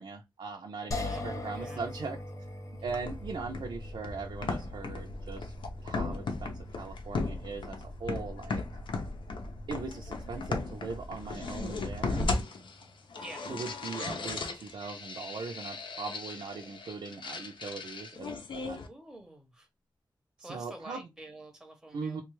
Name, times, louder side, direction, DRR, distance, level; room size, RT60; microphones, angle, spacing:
voice 1, 0.0-2.2 2.8-5.5 5.8-8.6 9.7-12.3 13.5-18.8 20.4-21.0 21.9-22.2, right 4 dB, 85° right, 0.6 m, -40 dB
sound 1, 0.9-14.0, left 2 dB, 40° left, 0.6 m, -44 dB
voice 2, 1.1-1.9 13.2-13.5 18.8-19.7 20.4-22.2, right 1 dB, 5° right, 0.7 m, -48 dB
sound 2, 2.9-18.9, left 3 dB, 90° left, 0.7 m, -37 dB
3.3 x 2.3 x 3.0 m
wide cardioid pair, 180°, 8 cm